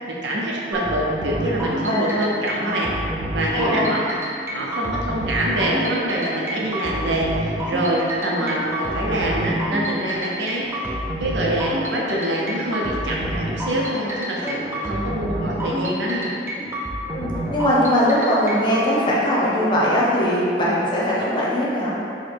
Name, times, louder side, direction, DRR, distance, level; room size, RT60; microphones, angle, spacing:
voice 1, 0.1-2.9 3.3-4.1 4.5-10.9 11.2-16.3, right 1 dB, 80° right, -3 dB, 0.7 m, -25 dB
sound 1, 0.7-18.8, equal, 15° right, 0.4 m, -28 dB
voice 2, 1.8-2.2 3.5-3.9 8.3-8.4 14.4-14.5 17.1-22.0, equal, 25° left, -7 dB, 0.8 m, -21 dB
4.6 x 2.2 x 4.3 m, 2.6 s
head